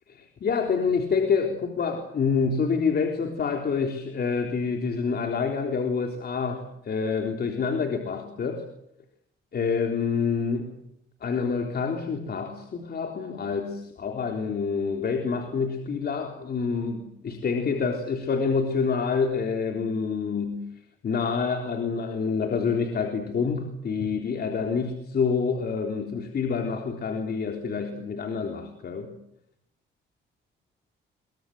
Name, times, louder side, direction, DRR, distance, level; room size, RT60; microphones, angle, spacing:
voice 1, 0.1-8.7 9.5-10.7 11.2-20.7 21.0-29.1, left 5 dB, 50° left, 4 dB, 3.8 m, -27 dB
27.0 x 24.0 x 7.9 m, 0.76 s
cardioid pair, 90°, 20 cm